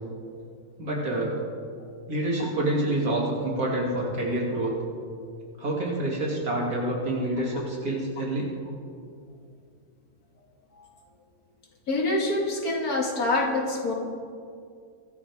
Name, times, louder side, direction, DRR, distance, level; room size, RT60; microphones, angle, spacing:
voice 1, 0.8-1.4 2.1-4.7 5.6-8.5, right 1 dB, 85° right, -4 dB, 3.4 m, -27 dB
voice 2, 11.9-13.9, left 2 dB, 85° left, 0 dB, 2.6 m, -26 dB
23.0 x 13.5 x 3.7 m, 2.4 s
omnidirectional pair, 1.5 m